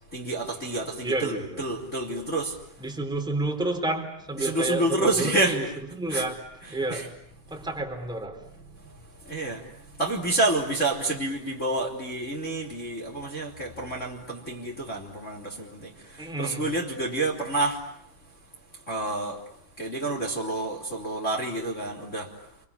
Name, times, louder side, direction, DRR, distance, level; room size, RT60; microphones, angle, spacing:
voice 1, 0.1-2.6 4.4-5.8 6.1-6.2 6.6-7.1 8.7-17.8 18.9-19.4 19.8-22.5, right 2 dB, 15° left, 1 dB, 3.0 m, -29 dB
voice 2, 1.0-1.6 2.8-5.6 5.9-6.4 6.7-7.1 7.5-8.4 16.2-16.7, right 2 dB, ahead, 2 dB, 3.3 m, -30 dB
30.0 x 23.5 x 8.5 m, 0.72 s
omnidirectional pair, 5.6 m